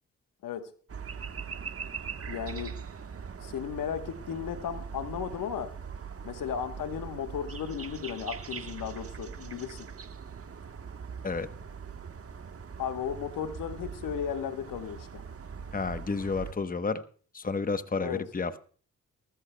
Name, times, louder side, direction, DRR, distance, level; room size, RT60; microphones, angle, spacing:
sound 1, 0.9-16.5, right 6 dB, 45° right, 1.2 m, -41 dB
voice 1, 2.3-2.8 3.4-5.7 6.2-9.9 12.8-15.2 18.0-18.2, left 8 dB, 80° left, 8 dB, 1.2 m, -35 dB
voice 2, 15.7-17.0 17.3-18.6, left 4 dB, 25° left, 11 dB, 1.0 m, -31 dB
23.5 x 13.5 x 2.2 m, 0.43 s
supercardioid pair, 55°, 32 cm